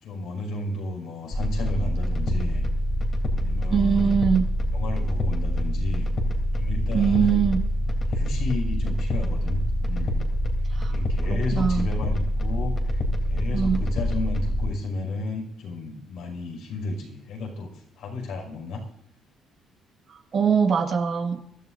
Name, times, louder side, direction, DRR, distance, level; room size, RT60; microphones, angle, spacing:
voice 1, 0.0-2.6 3.3-4.2 4.7-6.1 6.5-7.4 8.1-9.6 9.9-10.2 10.9-13.0 13.3-18.8, left 3 dB, 75° left, 1 dB, 5.7 m, -33 dB
sound 1, 1.3-14.7, equal, 35° left, 3.2 m, -25 dB
voice 2, 3.7-4.4 6.9-7.6 10.7-11.0 11.5-11.9 13.5-13.8 20.1-21.4, right 7 dB, 45° right, 4 dB, 1.8 m, -22 dB
25.0 x 12.5 x 2.7 m, 0.76 s
cardioid pair, 115°, 0 cm